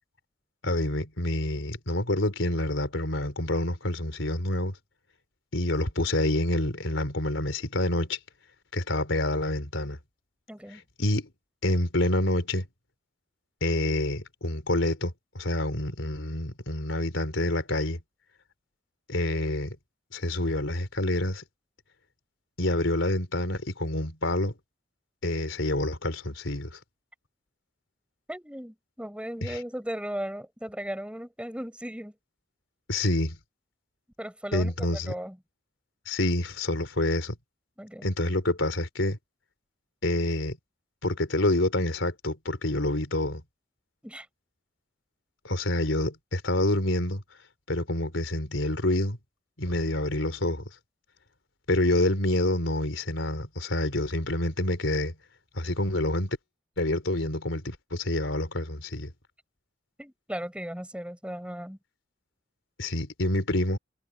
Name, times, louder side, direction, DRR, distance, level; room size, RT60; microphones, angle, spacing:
voice 1, 0.6-4.7 5.5-8.2 8.7-10.0 10.7-11.3 11.6-12.6 13.6-18.0 19.1-19.8 20.1-21.4 22.6-24.5 25.2-26.8 29.4-29.6 32.9-33.4 34.5-35.1 36.1-37.4 38.0-39.2 40.0-40.6 41.0-43.4 45.4-47.2 47.7-49.2 49.6-50.7 51.7-55.2 55.5-56.4 56.8-59.1 62.8-63.8, left 1 dB, 80° left, 3.8 m, -27 dB
voice 2, 10.5-10.8 28.3-32.1 34.2-35.4 37.8-38.1 44.0-44.3 60.0-61.8, equal, 5° right, 5.7 m, -37 dB
head